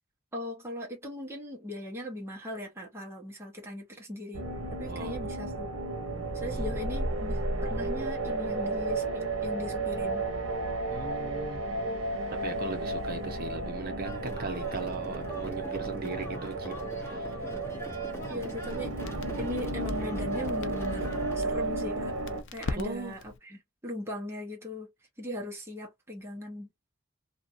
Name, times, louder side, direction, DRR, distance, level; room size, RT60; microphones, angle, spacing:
voice 1, 0.3-4.5 4.7-5.7 6.3-10.3 18.3-18.9 19.4-22.1 22.5-24.9 25.2-26.7, left 1 dB, 10° right, 0.9 m, -39 dB
sound 1, 4.3-22.4, right 2 dB, 75° right, 1.1 m, -33 dB
voice 2, 4.9-5.3 6.5-6.8 10.9-11.6 12.4-16.7 17.0-17.3 22.8-23.1, right 3 dB, 45° right, 0.8 m, -38 dB
sound 2, 14.0-21.4, right 1 dB, 10° left, 1.1 m, -42 dB
Crackle, 18.1-23.4, left 3 dB, 60° left, 0.5 m, -43 dB
2.9 x 2.5 x 2.5 m
head